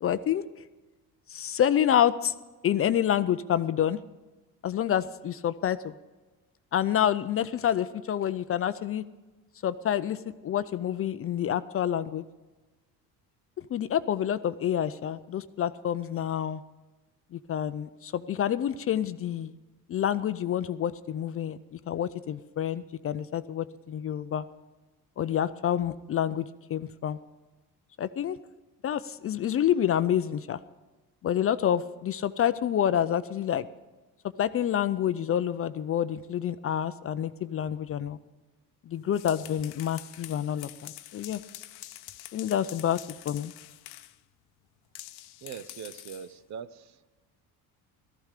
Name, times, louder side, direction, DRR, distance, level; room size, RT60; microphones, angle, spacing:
voice 1, 0.0-0.4 1.3-2.3 2.6-4.0 4.6-5.9 6.7-9.0 9.6-10.2 10.4-12.2 13.7-16.6 17.3-19.6 19.9-24.5 25.2-27.2 28.0-28.4 28.8-30.6 31.2-33.7 34.4-38.2 38.9-41.4 42.3-43.0 43.3-43.5, left 10 dB, 35° left, 13 dB, 0.5 m, -28 dB
sound 1, 39.0-44.2 44.9-46.3, left 15 dB, 80° left, 0.8 m, -46 dB
voice 2, 45.4-47.0, right 7 dB, 45° right, 15 dB, 0.7 m, -41 dB
15.0 x 14.0 x 4.9 m, 1.2 s
cardioid pair, 115°, 39 cm